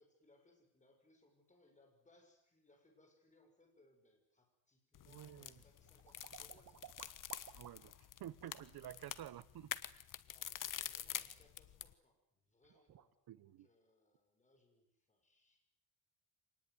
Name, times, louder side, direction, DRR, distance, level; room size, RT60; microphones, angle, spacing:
voice 1, 0.0-6.9 10.2-15.6, left 2 dB, 20° left, 3 dB, 6.7 m, -71 dB
sound 1, 4.9-11.9, left 10 dB, 60° left, 1.3 m, -47 dB
voice 2, 5.1-5.5 7.5-9.7 13.3-13.7, right 12 dB, 75° right, 17 dB, 1.2 m, -51 dB
sound 2, 5.6-8.0 8.4-8.7 12.2-12.3 12.6-13.1, right 10 dB, 55° right, 1.7 m, -57 dB
26.0 x 19.5 x 9.7 m, 0.75 s
cardioid pair, 145°, 37 cm